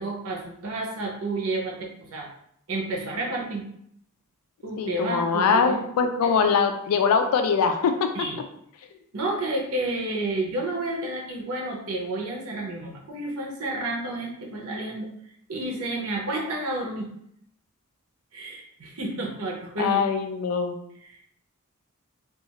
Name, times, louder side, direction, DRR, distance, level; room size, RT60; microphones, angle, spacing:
voice 1, 0.0-2.3 2.7-3.7 4.6-6.4 8.1-8.4 9.1-15.1 15.5-17.1 18.3-20.0 21.0-21.2, right 2 dB, 75° right, -1 dB, 0.7 m, -30 dB
voice 2, 4.8-8.1 19.8-20.8, left 6 dB, 85° left, 6 dB, 0.3 m, -22 dB
2.4 x 2.4 x 2.9 m, 0.71 s
head